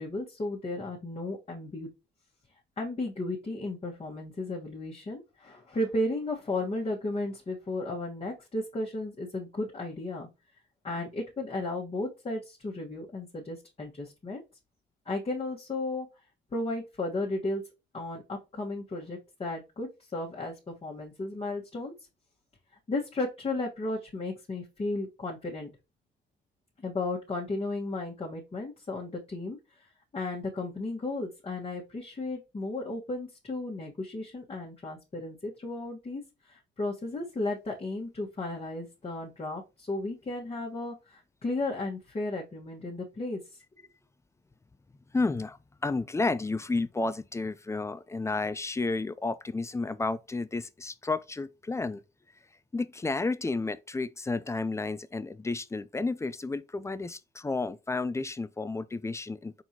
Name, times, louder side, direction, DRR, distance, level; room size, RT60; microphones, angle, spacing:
voice 1, 0.0-1.9 2.8-10.3 10.8-14.4 15.0-16.1 16.5-17.6 17.9-21.9 22.9-25.7 26.8-43.6, left 2 dB, 30° left, 1.3 m, -34 dB
voice 2, 45.1-45.6 45.8-52.0 52.7-59.5, left 3 dB, 15° left, 0.4 m, -31 dB
4.4 x 4.0 x 2.8 m
cardioid pair, 90°, 20 cm